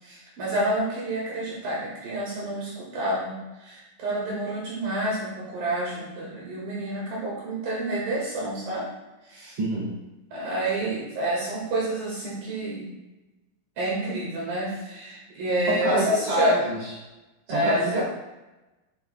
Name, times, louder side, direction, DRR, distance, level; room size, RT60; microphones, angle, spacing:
voice 1, 0.0-8.9 9.3-9.6 10.3-12.9 13.8-16.6 17.5-18.0, right 1 dB, 60° right, -5 dB, 2.9 m, -28 dB
voice 2, 9.6-10.0 15.7-16.8 17.5-18.0, right 1 dB, 45° right, -6 dB, 3.1 m, -26 dB
9.5 x 6.8 x 2.2 m, 1.0 s
omnidirectional pair, 5.5 m